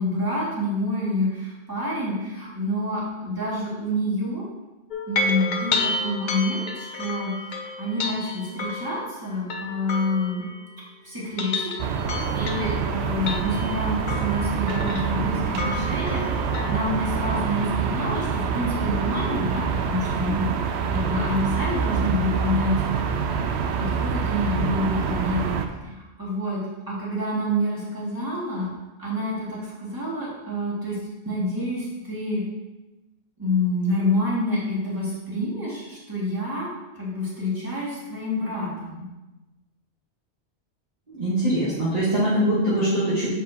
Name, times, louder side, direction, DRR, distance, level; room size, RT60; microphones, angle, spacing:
voice 1, 0.0-4.4 5.1-10.5 11.0-11.7 12.1-20.5 20.9-23.3 23.8-26.6 26.9-28.7 29.0-31.0 31.2-32.4 33.4-36.7 37.0-39.1, left 1 dB, 20° right, -7 dB, 2.1 m, -28 dB
sound 1, 4.9-10.9 11.2-16.9, left 3 dB, 50° left, 0.7 m, -31 dB
sound 2, 11.8-25.7, right 6 dB, 80° right, 0.8 m, -26 dB
voice 2, 41.1-43.3, right 1 dB, 35° right, -11 dB, 1.6 m, -22 dB
7.1 x 6.0 x 2.8 m, 1.1 s
omnidirectional pair, 1.1 m